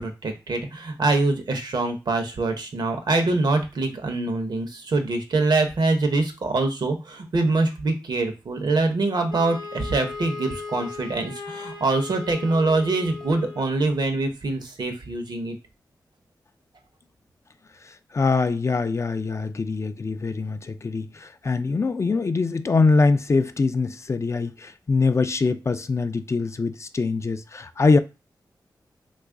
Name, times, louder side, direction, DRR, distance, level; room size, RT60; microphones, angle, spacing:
voice 1, 0.0-15.6, right 3 dB, 65° right, 0.7 m, -24 dB
Wind instrument woodwind instrument, 9.3-13.7, left 4 dB, 75° left, 0.7 m, -37 dB
voice 2, 17.9-28.0, left 4 dB, 40° left, 0.3 m, -23 dB
3.0 x 2.3 x 3.6 m
cardioid pair, 55°, 8 cm